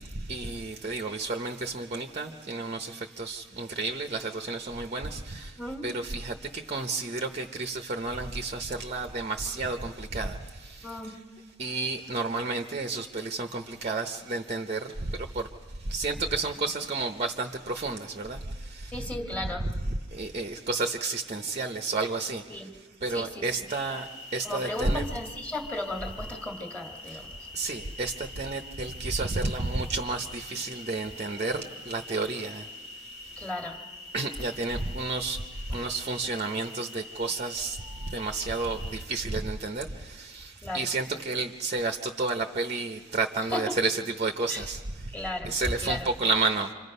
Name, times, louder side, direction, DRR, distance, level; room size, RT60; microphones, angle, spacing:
voice 1, 0.3-5.5 5.8-6.3 6.7-10.4 11.6-14.8 15.3-15.5 15.9-18.4 19.9-22.4 23.0-24.0 24.3-25.0 27.6-31.6 31.9-32.6 34.1-35.4 35.7-37.8 38.1-39.9 40.2-44.8 45.4-46.7, right 3 dB, 30° right, 5 dB, 0.7 m, -31 dB
voice 2, 10.8-11.2 18.9-19.7 22.5-22.7 23.1-23.5 24.4-27.5 33.4-33.8 35.7-35.8 40.6-40.9 43.5-43.8 44.5-44.7 45.1-45.5 45.8-46.1, left 1 dB, 5° left, 2 dB, 1.8 m, -35 dB
sound 1, 23.7-39.0, left 2 dB, 85° left, 3.4 m, -45 dB
28.0 x 25.0 x 5.5 m, 1.5 s
head